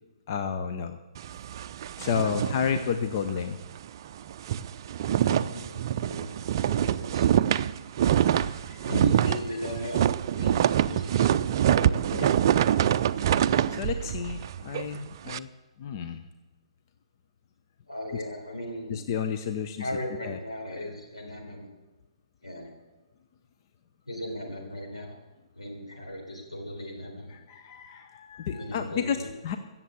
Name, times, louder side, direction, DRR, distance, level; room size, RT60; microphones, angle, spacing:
voice 1, 0.3-1.0 2.0-3.6 8.4-8.9 12.1-12.3 13.7-15.5 15.8-16.2 18.9-19.9 20.2-20.4 27.3-29.2 29.4-29.6, left 7 dB, 40° left, 7 dB, 0.8 m, -31 dB
sound 1, 1.1-3.4 3.7-3.9 4.2-15.4, right 10 dB, 45° right, 0.4 m, -25 dB
voice 2, 2.2-2.6 5.3-6.4 6.8-7.4 8.8-11.3 11.6-12.2 17.9-19.0 19.8-21.7 22.4-22.7 24.1-25.1 25.5-27.3 28.5-29.3, equal, 85° left, 0 dB, 4.1 m, -37 dB
16.0 x 7.4 x 8.2 m, 1.2 s
figure-of-eight pair, 125°, 3 cm